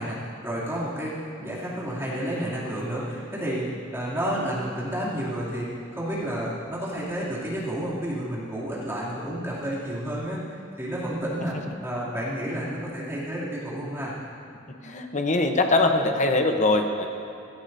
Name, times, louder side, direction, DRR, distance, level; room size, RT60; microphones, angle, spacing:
voice 1, 0.0-11.6 11.8-14.1, equal, 15° right, -8 dB, 2.8 m, -31 dB
voice 2, 14.8-17.1, left 2 dB, 40° left, 4 dB, 0.9 m, -22 dB
16.5 x 13.0 x 2.7 m, 3.0 s
head